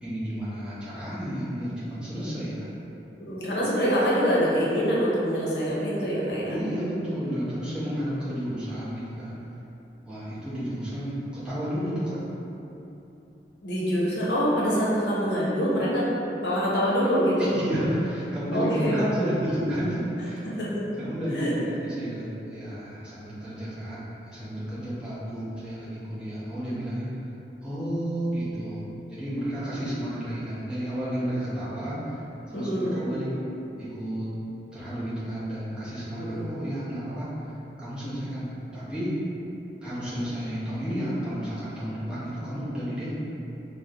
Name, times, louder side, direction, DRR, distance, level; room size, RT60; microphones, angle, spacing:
voice 1, 0.0-2.7 6.5-9.4 10.1-12.2 17.4-20.5 20.9-27.1 27.6-28.8 29.1-32.2 32.5-33.3 33.8-34.3 34.7-37.3 37.8-38.5 38.7-39.1 39.8-43.1, equal, 5° right, -12 dB, 0.8 m, -31 dB
voice 2, 3.2-6.6 13.6-16.0 16.4-17.5 18.5-18.9 20.6-20.8 21.3-21.5 32.5-33.1 36.2-36.5, equal, 75° left, -6 dB, 0.7 m, -25 dB
4.2 x 2.1 x 2.5 m, 3.0 s
head